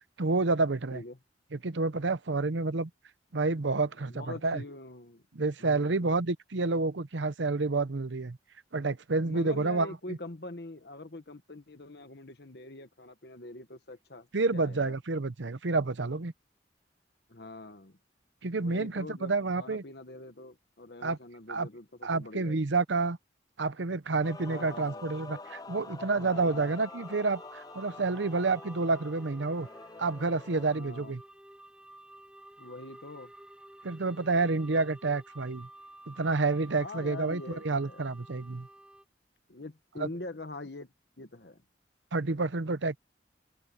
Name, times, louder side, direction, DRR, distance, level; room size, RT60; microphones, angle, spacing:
voice 1, 0.2-1.0 1.5-2.9 3.3-4.6 5.3-8.4 8.7-10.2 14.3-16.3 18.4-19.8 21.0-21.2 21.5-21.7 22.0-23.2 23.6-29.7 30.0-31.2 33.8-35.7 36.1-38.7 40.0-40.1 42.1-43.0, right 3 dB, 80° right, 0.8 m, -29 dB
voice 2, 4.0-5.2 5.6-6.2 9.2-14.3 14.5-14.9 17.3-18.0 18.5-22.6 24.5-25.1 26.0-26.7 30.8-31.2 32.6-33.3 36.8-38.1 39.5-41.6, left 2 dB, 60° left, 1.3 m, -44 dB
Male singing / Female singing / Musical instrument, 24.2-30.8, left 3 dB, 20° left, 0.6 m, -46 dB
sound 1, 26.3-39.0, right 1 dB, 5° right, 5.7 m, -52 dB
open air
head